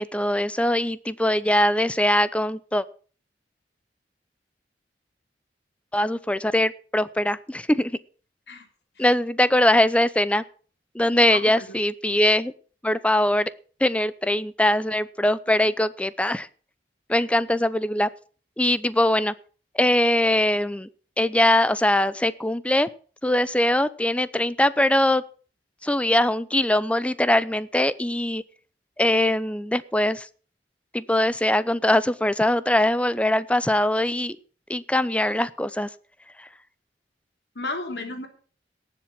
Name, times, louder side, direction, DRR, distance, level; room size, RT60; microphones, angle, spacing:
voice 1, 0.0-2.8 5.9-8.0 9.0-10.4 10.9-12.5 12.8-13.5 13.8-16.5 17.1-18.1 18.6-19.3 19.8-20.9 21.2-22.9 23.2-25.2 25.8-28.4 29.0-30.3 30.9-34.4 34.7-35.9, left 1 dB, 5° left, 16 dB, 0.6 m, -22 dB
voice 2, 11.1-11.8 17.1-17.2 37.5-38.3, left 2 dB, 70° left, 5 dB, 3.1 m, -34 dB
18.0 x 7.5 x 5.9 m, 0.40 s
head